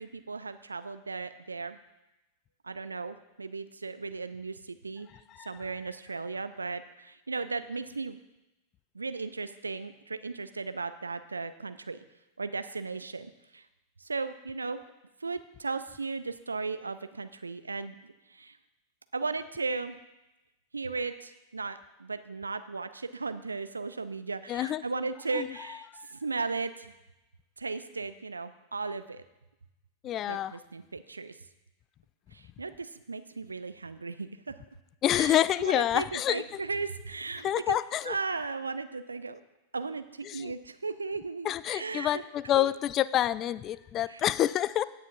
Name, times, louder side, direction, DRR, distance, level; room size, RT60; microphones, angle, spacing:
voice 1, 0.0-1.8 2.6-5.1 5.4-8.2 8.9-12.0 12.4-13.7 14.0-14.8 15.2-18.6 19.1-20.0 20.7-26.9 27.6-29.2 30.3-31.4 32.3-34.6 35.2-37.8 38.0-39.4 39.7-42.2 42.6-42.7 44.1-44.2, right 4 dB, 80° right, 11 dB, 0.5 m, -36 dB
voice 2, 24.5-24.8 25.3-25.5 25.9-26.0 30.0-30.6 35.0-36.4 37.4-38.1 40.3-40.5 41.4-44.8, left 12 dB, 30° left, 18 dB, 0.3 m, -27 dB
16.5 x 8.2 x 2.7 m, 0.98 s
figure-of-eight pair, 90°, 0 cm